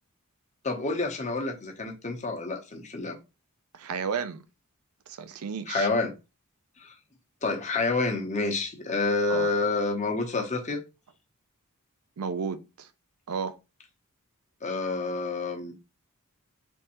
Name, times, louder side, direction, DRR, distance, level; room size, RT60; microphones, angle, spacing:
voice 1, 0.6-3.2 5.7-6.1 6.8-6.9 7.4-10.8 14.6-15.7, left 3 dB, 35° left, 0.8 m, -28 dB
voice 2, 3.7-4.4 5.1-5.9 9.3-9.5 12.2-12.9 13.3-13.6, right 6 dB, 70° right, 0.5 m, -33 dB
3.5 x 3.2 x 2.9 m
head